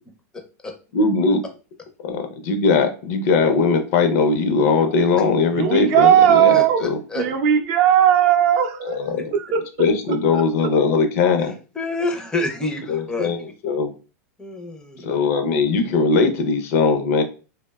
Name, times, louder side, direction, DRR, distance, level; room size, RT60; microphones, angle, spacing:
voice 1, 0.9-1.4 2.0-7.0 8.8-9.3 9.8-11.6 12.9-13.9 15.0-17.2, left 4 dB, 60° left, 6 dB, 0.5 m, -20 dB
voice 2, 5.6-6.9 7.2-9.0 9.3-9.9 10.3-10.4, right 10 dB, 50° right, 6 dB, 0.5 m, -17 dB
voice 3, 6.5-7.2 11.8-13.3 14.4-15.1, left 2 dB, 10° left, 2 dB, 0.5 m, -27 dB
2.6 x 2.0 x 2.2 m, 0.35 s
supercardioid pair, 140°, 9 cm